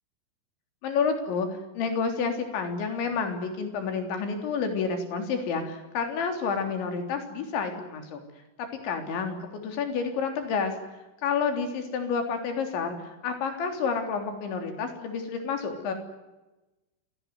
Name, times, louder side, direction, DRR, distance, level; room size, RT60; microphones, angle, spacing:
voice 1, 0.8-1.5 1.8-8.2 8.6-10.7 11.2-15.9, left 5 dB, 70° left, 5 dB, 5.7 m, -29 dB
26.0 x 18.5 x 9.6 m, 1.1 s
omnidirectional pair, 5.6 m